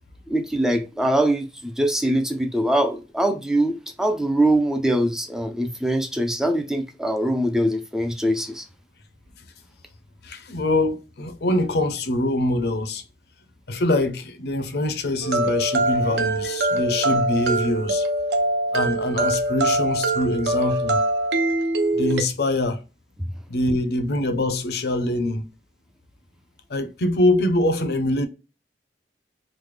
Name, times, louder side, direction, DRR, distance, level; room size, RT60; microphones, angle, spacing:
voice 1, 0.3-8.7, right 1 dB, 5° right, 0.3 m, -23 dB
voice 2, 10.2-13.0 13.7-18.1 18.7-21.0 21.9-22.8 23.5-25.5 26.7-28.3, left 1 dB, 60° left, 0.5 m, -24 dB
sound 1, 15.2-22.2, right 2 dB, 70° right, 0.6 m, -23 dB
3.2 x 2.0 x 3.2 m
head